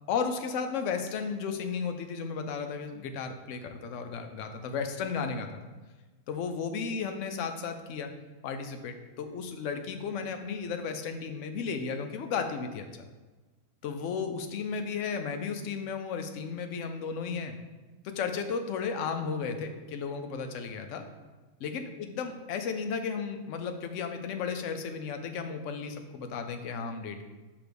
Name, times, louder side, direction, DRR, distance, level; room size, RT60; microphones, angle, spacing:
voice 1, 0.1-5.5 6.3-8.1 8.4-12.8 13.8-17.5 18.0-21.1 21.6-27.2, left 5 dB, 65° left, 6 dB, 0.8 m, -34 dB
6.2 x 2.9 x 5.1 m, 1.3 s
omnidirectional pair, 1.6 m